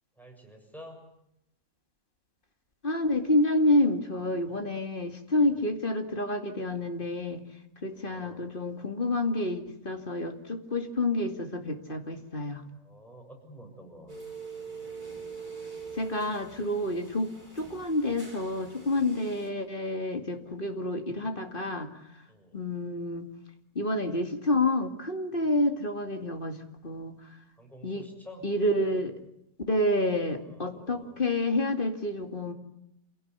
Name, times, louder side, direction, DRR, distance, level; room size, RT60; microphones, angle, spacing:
voice 1, 0.2-1.0 4.5-4.6 5.4-5.8 7.9-8.5 12.6-14.2 18.9-19.2 22.3-22.7 25.3-25.5 27.6-28.4 30.4-31.2, equal, ahead, 2 dB, 7.4 m, -50 dB
voice 2, 2.8-7.4 7.8-12.6 15.9-21.9 22.5-23.3 23.7-27.2 27.8-28.1 28.4-29.1 29.7-32.5, left 1 dB, 35° left, 6 dB, 2.6 m, -28 dB
sound 1, 14.1-19.5, right 5 dB, 30° right, 5.1 m, -44 dB
28.0 x 17.0 x 9.8 m, 0.82 s
omnidirectional pair, 1.5 m